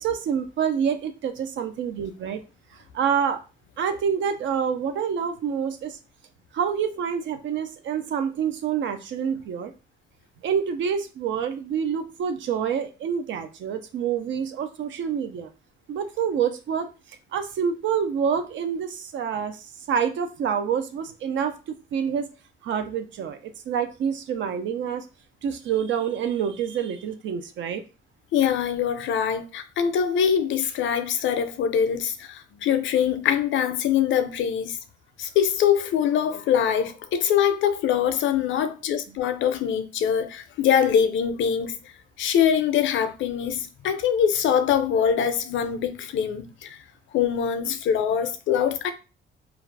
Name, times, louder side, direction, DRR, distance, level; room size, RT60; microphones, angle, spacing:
voice 1, 0.0-2.4 2.9-3.4 3.8-5.9 6.5-9.7 10.4-15.5 15.9-16.9 17.3-19.6 19.9-21.5 21.9-22.3 22.6-23.4 23.7-25.0 25.4-27.8, right 7 dB, 70° right, 0.5 m, -27 dB
voice 2, 28.3-34.8 35.2-41.8 42.2-46.8 47.1-48.9, left 8 dB, 70° left, 0.5 m, -23 dB
2.4 x 2.4 x 3.2 m
cardioid pair, 90°, 20 cm